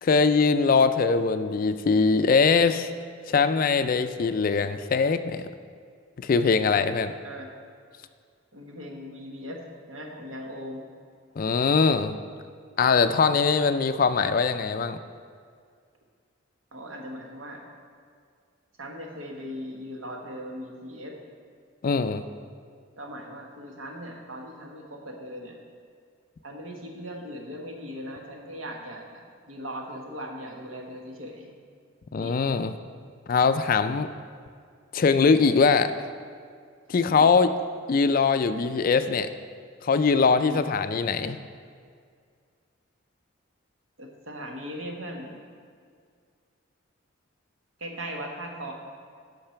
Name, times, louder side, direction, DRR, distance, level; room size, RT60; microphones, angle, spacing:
voice 1, 0.0-2.9 3.3-5.5 6.2-7.1 11.4-12.2 12.8-15.0 21.8-22.2 32.1-32.7 33.3-34.1 34.9-35.9 36.9-37.5 37.9-39.3 39.8-41.4, left 5 dB, 40° left, 10 dB, 0.3 m, -22 dB
voice 2, 8.5-10.8 16.7-17.6 18.8-21.1 23.0-25.6 26.4-31.5 32.2-32.4 37.0-37.3 40.4-40.6 44.0-45.4 47.8-48.7, equal, 75° right, 1 dB, 1.3 m, -39 dB
8.8 x 5.8 x 5.7 m, 2.1 s
head